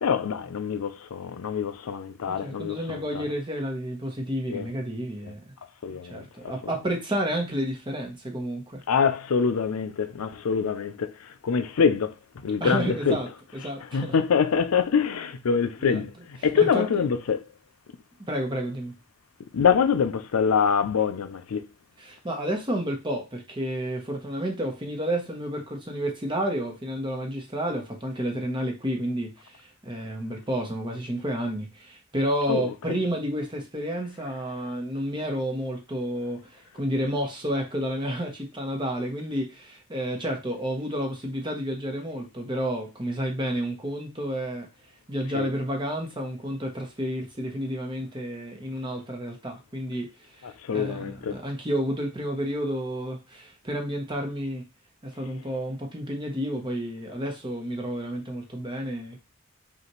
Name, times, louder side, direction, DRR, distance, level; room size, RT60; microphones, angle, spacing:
voice 1, 0.0-3.3 4.5-4.7 5.8-6.5 8.9-11.1 11.4-12.1 12.4-13.2 13.9-16.1 16.4-17.4 19.5-21.6 32.5-33.0 45.3-45.5 50.4-51.4, left 6 dB, 85° left, 0.4 m, -25 dB
voice 2, 2.3-5.4 5.9-8.8 12.6-14.2 15.8-16.0 16.5-17.0 18.3-18.9 22.0-44.7 45.1-50.1 50.4-54.6 55.0-59.2, equal, 20° right, 0.9 m, -30 dB
5.4 x 2.4 x 3.0 m
head